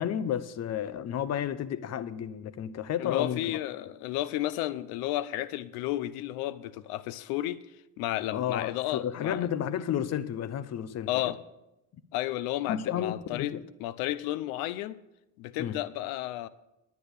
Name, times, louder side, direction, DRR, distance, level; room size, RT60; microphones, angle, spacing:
voice 1, 0.0-3.6 8.3-11.3 12.7-13.6 15.6-15.8, left 9 dB, 45° left, 16 dB, 0.9 m, -32 dB
voice 2, 3.0-7.6 8.0-9.4 11.1-11.4 12.1-13.5 13.8-15.0 15.4-16.5, left 14 dB, 75° left, 17 dB, 0.8 m, -32 dB
10.0 x 9.3 x 6.7 m, 0.90 s
supercardioid pair, 90°, 36 cm